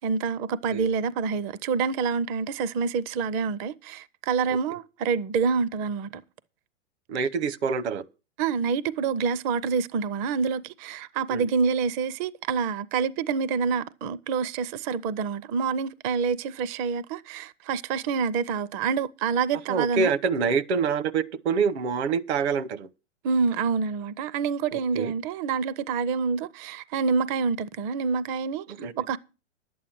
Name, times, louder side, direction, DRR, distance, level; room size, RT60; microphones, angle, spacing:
voice 1, 0.0-6.1 8.4-20.1 23.2-28.6 29.0-29.2, right 5 dB, 25° right, 0.5 m, -27 dB
voice 2, 7.1-8.0 11.3-11.4 19.7-22.9 24.7-25.1 28.8-28.9, right 5 dB, 60° right, 1.1 m, -26 dB
11.0 x 8.5 x 6.0 m
hypercardioid pair, 120°, 36 cm